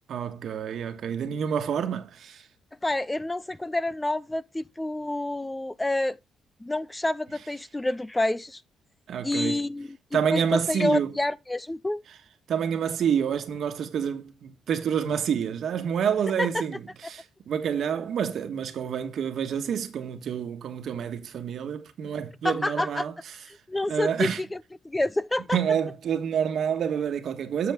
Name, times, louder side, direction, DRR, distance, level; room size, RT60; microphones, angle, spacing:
voice 1, 0.1-2.5 9.1-9.7 10.1-11.1 12.5-23.1 23.9-24.4 25.5-27.7, right 8 dB, 65° right, 1.4 m, -28 dB
voice 2, 2.8-6.2 6.6-8.6 9.2-12.0 16.4-16.6 22.4-23.1 23.5-24.6 24.8-25.6, left 1 dB, 15° left, 0.4 m, -28 dB
8.0 x 6.9 x 3.5 m
cardioid pair, 90°, 0 cm